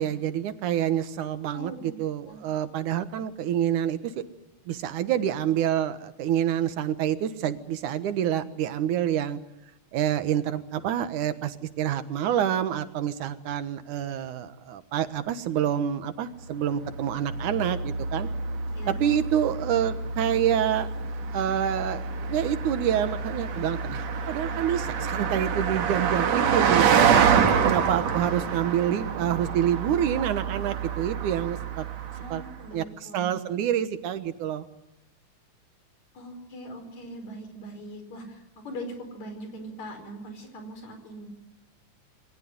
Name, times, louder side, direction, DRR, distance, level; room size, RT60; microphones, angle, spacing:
voice 1, 0.0-4.2 4.7-9.4 9.9-18.3 18.9-31.9 32.3-32.4 32.7-34.7, right 10 dB, 90° right, 11 dB, 2.8 m, -27 dB
voice 2, 1.5-2.0 2.3-2.4 18.7-19.1 32.1-33.4 36.1-41.3, equal, 65° left, 7 dB, 6.1 m, -41 dB
Car passing by, 16.8-32.5, right 6 dB, 65° right, 2.7 m, -27 dB
28.5 x 20.5 x 9.6 m, 0.91 s
omnidirectional pair, 3.4 m